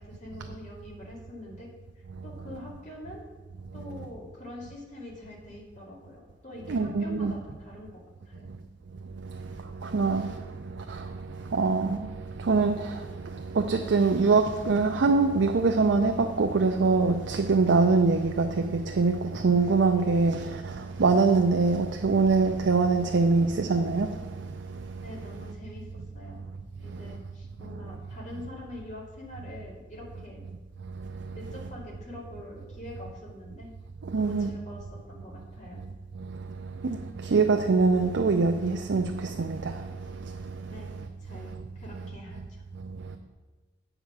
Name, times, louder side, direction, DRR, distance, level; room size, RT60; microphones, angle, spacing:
voice 1, 0.0-1.7 2.2-3.2 3.7-8.0 8.2-8.5 25.0-25.9 26.1-26.5 26.8-30.5 31.3-33.7 34.1-35.8 40.6-41.0 41.2-42.6, left 1 dB, 40° left, 2.5 m, -44 dB
voice 2, 6.7-7.3 9.1-25.5 26.9-27.2 30.9-31.4 34.0-34.5 35.8-35.9 36.2-41.0 41.3-41.6 42.8-43.2, right 4 dB, 70° right, 0.5 m, -25 dB
8.2 x 5.0 x 6.2 m
head